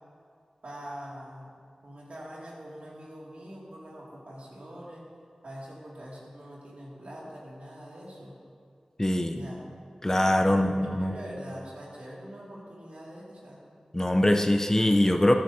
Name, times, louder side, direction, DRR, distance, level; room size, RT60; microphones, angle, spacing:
voice 1, 0.6-1.6 1.8-5.0 5.4-8.3 9.3-9.6 10.5-13.6, equal, 75° right, -5 dB, 2.4 m, -43 dB
voice 2, 9.0-9.4 10.0-11.1 13.9-15.4, left 1 dB, 25° left, 5 dB, 0.6 m, -23 dB
13.5 x 10.0 x 2.8 m, 2.2 s
cardioid pair, 40°, 2 cm